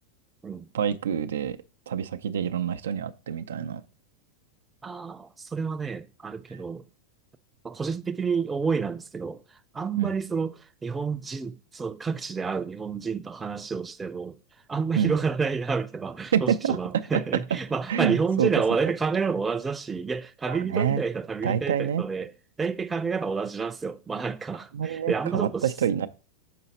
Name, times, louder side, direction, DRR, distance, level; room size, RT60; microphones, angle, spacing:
voice 1, 0.7-1.6 1.9-3.8 10.0-10.1 15.0-15.1 16.3-16.8 17.9-18.5 20.5-21.0 21.4-22.0 24.7-26.1, right 8 dB, 85° right, 0.4 m, -27 dB
voice 2, 4.8-6.8 7.6-9.4 9.7-14.4 14.7-22.3 22.6-25.7, right 5 dB, 15° right, 0.4 m, -29 dB
6.6 x 4.0 x 4.1 m
hypercardioid pair, 115°, 0 cm